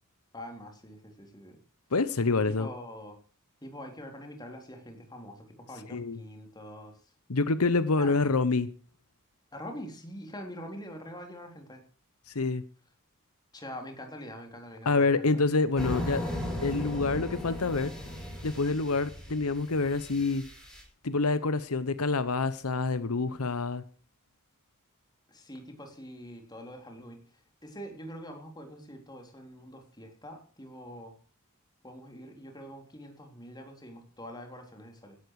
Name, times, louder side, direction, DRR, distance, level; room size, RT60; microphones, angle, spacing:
voice 1, 0.3-1.6 2.5-3.2 3.6-7.0 8.0-8.3 9.5-11.8 13.5-15.3 25.3-31.2 31.8-35.2, equal, 20° left, 3.8 m, -44 dB
voice 2, 1.9-2.7 5.9-6.2 7.3-8.7 12.3-12.6 14.8-16.2 16.6-17.9 18.4-20.4 21.0-23.8, left 3 dB, 85° left, 1.0 m, -27 dB
sound 1, 15.7-20.8, left 1 dB, 5° left, 6.0 m, -37 dB
16.5 x 12.0 x 4.9 m
head